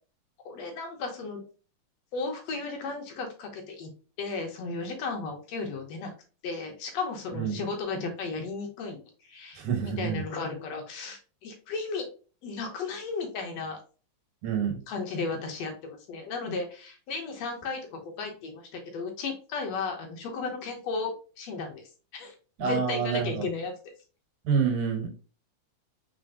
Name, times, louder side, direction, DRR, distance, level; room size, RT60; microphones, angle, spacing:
voice 1, 0.5-1.4 2.1-3.9 4.2-6.1 6.4-12.1 12.4-13.8 14.9-21.8 22.1-22.3 22.6-23.7, left 4 dB, 70° left, 2.0 m, -34 dB
voice 2, 9.6-10.2 14.4-14.8 22.6-23.5 24.4-25.1, right 6 dB, 85° right, 2.6 m, -27 dB
4.4 x 4.3 x 2.6 m
omnidirectional pair, 3.4 m